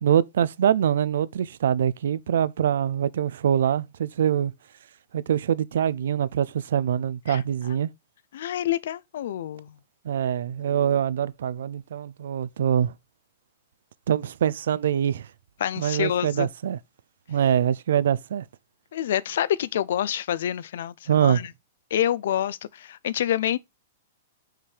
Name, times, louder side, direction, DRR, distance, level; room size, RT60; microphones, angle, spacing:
voice 1, 0.0-4.5 5.1-7.9 10.0-12.9 14.1-15.3 15.8-16.8 17.3-18.4 21.1-21.4, right 9 dB, 70° right, 0.6 m, -24 dB
voice 2, 8.3-9.7 10.7-11.0 15.6-16.5 18.9-21.5 21.9-23.6, left 11 dB, 60° left, 0.6 m, -27 dB
5.8 x 4.8 x 5.0 m
supercardioid pair, 175°, 0 cm